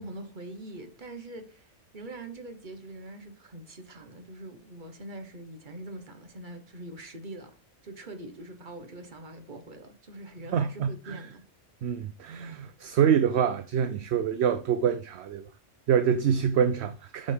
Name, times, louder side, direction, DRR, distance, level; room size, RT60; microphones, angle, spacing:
voice 1, 0.0-7.5 7.8-11.4, right 1 dB, 40° right, 1.4 m, -43 dB
voice 2, 10.5-11.3 11.8-15.5 15.9-17.3, right 8 dB, 65° right, 0.8 m, -26 dB
8.1 x 7.6 x 3.4 m
omnidirectional pair, 1.3 m